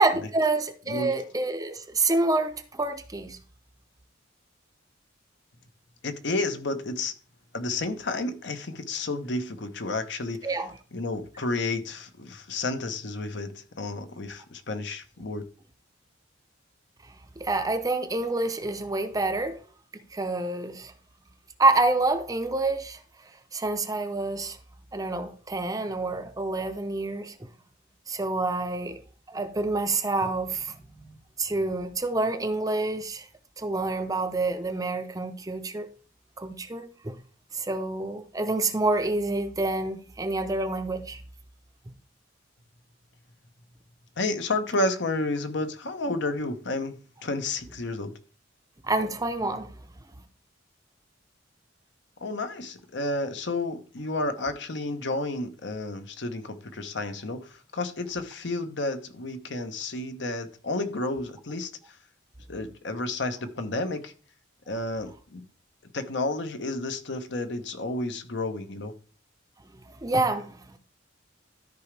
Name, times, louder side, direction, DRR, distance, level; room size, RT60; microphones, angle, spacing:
voice 1, 0.0-3.4 10.4-10.7 17.4-19.6 19.9-20.9 21.6-23.0 23.5-24.6 24.9-27.5 28.1-29.0 29.3-33.3 33.6-35.9 36.4-37.2 37.5-41.2 48.8-49.7 70.0-70.8, right 2 dB, 20° right, 0.6 m, -27 dB
voice 2, 6.0-7.1 7.5-10.4 10.9-15.4 44.2-46.9 47.2-48.1 52.2-61.7 62.5-64.1 64.7-65.4 65.9-68.9, left 2 dB, 65° left, 0.9 m, -31 dB
13.0 x 4.9 x 3.3 m
head